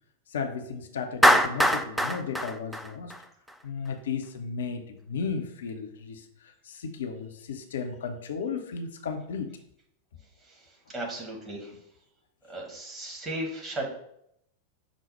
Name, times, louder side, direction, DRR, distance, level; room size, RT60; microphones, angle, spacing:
voice 1, 0.3-3.1 3.6-9.5, left 5 dB, 65° left, 5 dB, 0.5 m, -34 dB
Clapping, 1.2-3.5, equal, ahead, 0.3 m, -22 dB
voice 2, 10.4-11.7 12.5-13.9, right 1 dB, 20° right, -2 dB, 1.4 m, -36 dB
6.0 x 2.0 x 4.1 m, 0.74 s
figure-of-eight pair, 90°, 0 cm